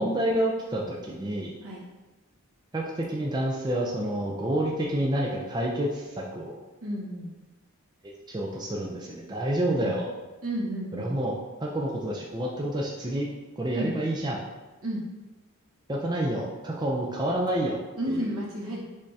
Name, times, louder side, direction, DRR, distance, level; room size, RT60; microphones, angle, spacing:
voice 1, 0.0-1.6 2.7-6.6 8.3-10.1 10.9-11.3 11.6-13.3 13.6-14.4 15.9-17.8 18.1-18.3, right 1 dB, 20° right, -2 dB, 0.4 m, -28 dB
voice 2, 6.8-7.3 9.8-10.0 10.4-11.1 13.7-13.9 14.8-15.0 18.0-18.8, right 1 dB, 80° right, -4 dB, 1.3 m, -32 dB
5.2 x 3.5 x 2.7 m, 1.2 s
head